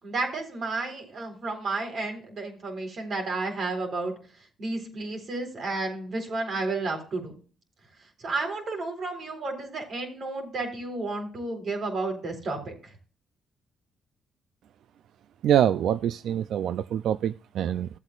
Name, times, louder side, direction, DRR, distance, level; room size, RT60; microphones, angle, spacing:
voice 1, 0.0-4.1 4.6-7.4 8.2-12.8, right 3 dB, 55° right, 3 dB, 4.0 m, -32 dB
voice 2, 15.4-17.9, right 10 dB, 75° right, 14 dB, 0.3 m, -25 dB
15.0 x 8.1 x 2.4 m, 0.39 s
cardioid pair, 90°, 0 cm